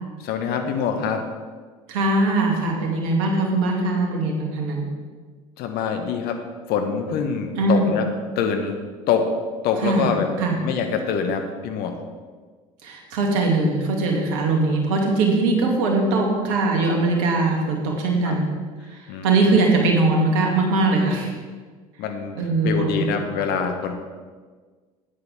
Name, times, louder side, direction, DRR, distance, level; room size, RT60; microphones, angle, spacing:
voice 1, 0.2-1.2 5.6-6.4 6.7-8.1 8.4-8.8 9.1-9.3 9.6-10.3 10.5-12.0 18.2-18.4 19.1-19.3 22.0-23.9, left 6 dB, 60° left, 5 dB, 1.3 m, -25 dB
voice 2, 1.9-4.9 7.6-7.9 9.8-10.1 10.4-10.6 12.8-18.5 18.9-21.3 22.4-23.1, right 2 dB, 70° right, 0 dB, 2.5 m, -21 dB
12.5 x 9.6 x 3.6 m, 1.5 s
hypercardioid pair, 65°, 18 cm